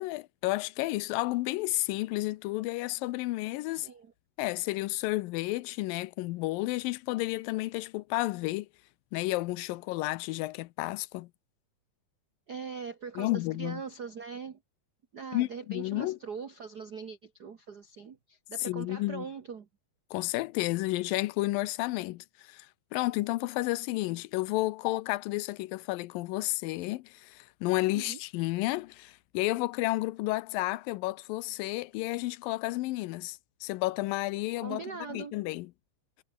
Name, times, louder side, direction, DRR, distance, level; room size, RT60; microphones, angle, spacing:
voice 1, 0.0-3.9 4.4-8.7 9.1-11.3 13.2-13.8 15.3-16.2 18.6-19.3 20.1-22.7 22.9-35.7, left 19 dB, 90° left, 2.4 m, -31 dB
voice 2, 12.5-14.6 15.1-19.7 27.9-28.2 34.6-35.3, right 5 dB, 90° right, 0.8 m, -41 dB
omnidirectional pair, 3.9 m